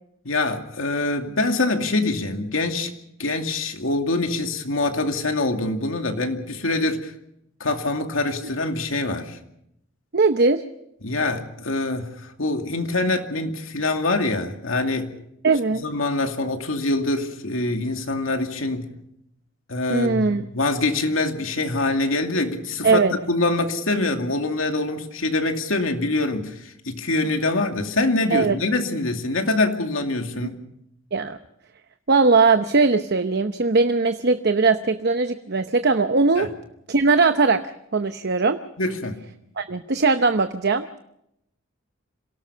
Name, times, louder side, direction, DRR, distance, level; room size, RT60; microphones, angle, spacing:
voice 1, 0.2-2.9 3.2-7.1 7.6-9.4 11.0-15.1 15.8-18.9 19.7-23.0 23.3-30.6 36.4-36.5 38.8-39.2, left 2 dB, 80° left, 2.5 m, -24 dB
voice 2, 10.1-10.6 15.4-15.8 19.9-20.4 22.8-23.1 28.3-28.6 31.1-31.4 32.1-36.5 36.9-37.6 37.9-38.6 39.6-40.8, right 4 dB, 55° right, 0.9 m, -19 dB
27.0 x 18.0 x 5.6 m
head